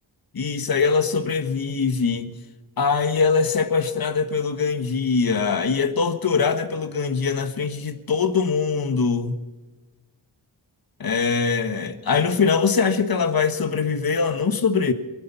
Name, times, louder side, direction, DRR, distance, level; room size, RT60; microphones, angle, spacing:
voice 1, 0.3-2.4 2.8-9.3 11.0-14.9, left 5 dB, 45° left, 1.4 m, -22 dB
23.5 x 9.6 x 6.0 m
wide cardioid pair, 90°, 47 cm